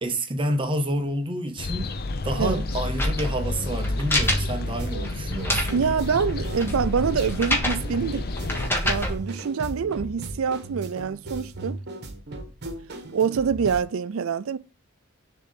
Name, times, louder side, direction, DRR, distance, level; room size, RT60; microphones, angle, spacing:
voice 1, 0.0-1.9 2.2-5.8, right 1 dB, 25° right, 0.8 m, -29 dB
sound 1, 1.6-8.7, left 2 dB, 45° left, 0.6 m, -30 dB
sound 2, 2.2-9.2, left 1 dB, 10° left, 1.4 m, -29 dB
voice 2, 2.3-2.6 5.7-8.3 8.9-11.8 13.1-14.6, right 6 dB, 70° right, 0.4 m, -25 dB
sound 3, 4.2-13.8, right 2 dB, 50° right, 1.3 m, -37 dB
6.8 x 3.8 x 5.9 m
head